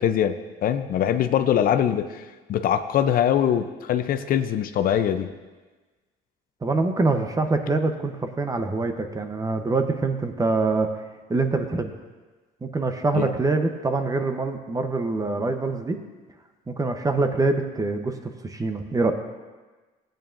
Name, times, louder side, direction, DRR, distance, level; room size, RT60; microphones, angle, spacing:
voice 1, 0.0-5.3 13.1-13.3, left 9 dB, 60° left, 9 dB, 0.6 m, -23 dB
voice 2, 6.6-10.9 11.3-11.9 12.6-16.0 16.7-19.1, right 3 dB, 20° right, 7 dB, 0.8 m, -24 dB
16.5 x 9.0 x 2.6 m, 1.3 s
cardioid pair, 110°, 17 cm